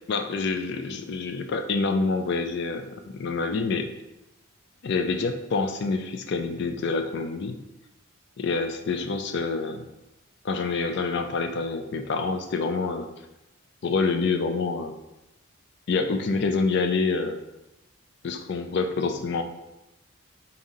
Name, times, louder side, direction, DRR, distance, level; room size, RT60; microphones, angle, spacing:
voice 1, 0.1-3.9 4.8-7.6 8.4-9.9 10.4-13.1 13.8-15.0 15.9-17.4 18.2-19.4, left 4 dB, 50° left, 7 dB, 0.3 m, -27 dB
4.0 x 2.7 x 3.7 m, 0.94 s
head